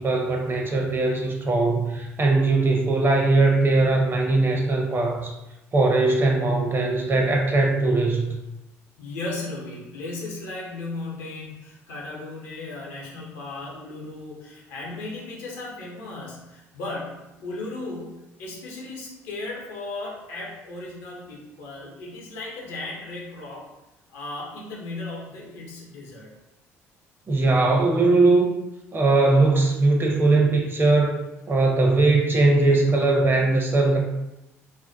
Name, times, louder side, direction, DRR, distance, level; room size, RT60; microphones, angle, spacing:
voice 1, 0.0-5.3 5.7-8.3 27.3-28.5 28.9-31.2 31.5-34.0, right 3 dB, 30° right, 0 dB, 0.6 m, -20 dB
voice 2, 9.0-23.7 24.1-26.3, left 2 dB, 75° left, -3 dB, 0.7 m, -36 dB
2.5 x 2.1 x 2.6 m, 0.96 s
figure-of-eight pair, 50°, 8 cm